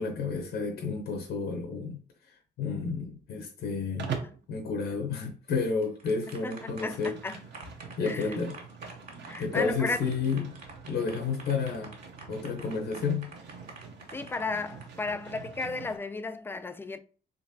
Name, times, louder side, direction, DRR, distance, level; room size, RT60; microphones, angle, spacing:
voice 1, 0.0-2.0 2.6-4.1 4.5-7.1 8.0-8.6 9.4-10.5 10.9-11.9 12.3-13.3, left 5 dB, 80° left, 0.8 m, -31 dB
Livestock farm animals working animals, 4.0-4.4 6.2-16.0, right 6 dB, 60° right, 0.8 m, -43 dB
sound 1, 5.6-15.4, right 3 dB, 45° right, 1.7 m, -48 dB
voice 2, 6.4-7.4 8.0-8.3 9.3-10.0 14.1-17.0, left 3 dB, 10° left, 0.3 m, -34 dB
3.9 x 3.0 x 2.7 m
cardioid pair, 90°, 20 cm